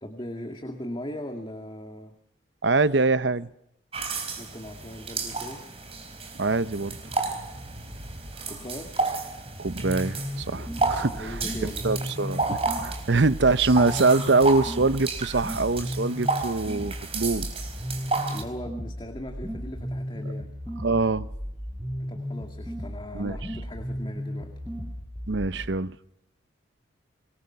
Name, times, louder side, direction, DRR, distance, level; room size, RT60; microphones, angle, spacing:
voice 1, 0.0-2.2 4.4-5.6 8.5-8.9 10.5-12.6 18.3-20.5 22.1-24.5, equal, 25° left, 2.2 m, -39 dB
voice 2, 2.6-3.5 6.3-7.0 9.6-12.4 13.1-17.5 20.8-21.3 23.1-23.4 25.3-26.0, right 3 dB, 65° right, 0.8 m, -24 dB
sound 1, 3.9-18.4, right 3 dB, 30° right, 4.2 m, -32 dB
sound 2, 9.7-25.7, equal, 10° right, 7.3 m, -35 dB
26.0 x 22.0 x 5.8 m
head